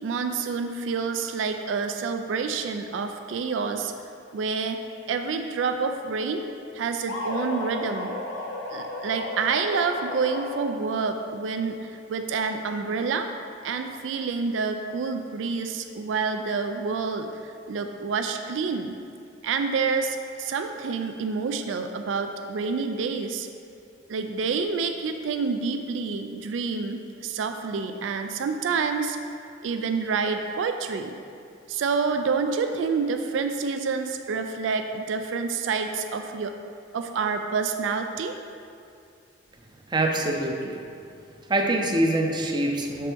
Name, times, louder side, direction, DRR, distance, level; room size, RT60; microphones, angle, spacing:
voice 1, 0.0-3.9 4.3-4.8 5.1-6.5 6.7-8.1 8.7-13.3 13.6-19.0 19.4-23.5 24.1-29.2 29.6-31.2 31.7-36.5 36.9-38.4, right 5 dB, 85° right, 6 dB, 0.4 m, -28 dB
sound 1, 7.1-11.0, left 2 dB, 80° left, 0.8 m, -33 dB
voice 2, 39.9-40.8 41.4-43.1, right 1 dB, 25° right, 2 dB, 0.5 m, -25 dB
7.2 x 4.5 x 3.4 m, 2.4 s
head